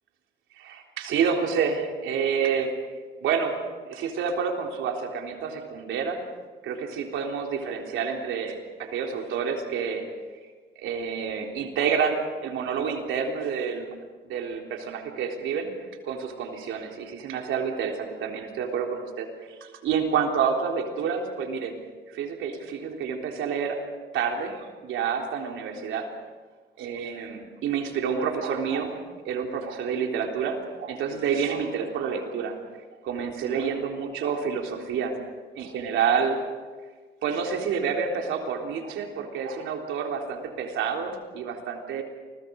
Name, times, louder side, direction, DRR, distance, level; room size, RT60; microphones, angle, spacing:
voice 1, 0.5-2.7 3.2-3.6 3.8-6.2 6.6-10.0 10.8-13.9 14.2-15.7 16.0-21.7 22.1-23.8 24.1-26.1 26.8-29.0 29.3-32.6 33.0-35.1 35.6-36.4 37.2-42.0, right 6 dB, 85° right, 2 dB, 3.7 m, -28 dB
28.5 x 22.5 x 5.4 m, 1.4 s
cardioid pair, 90°, 20 cm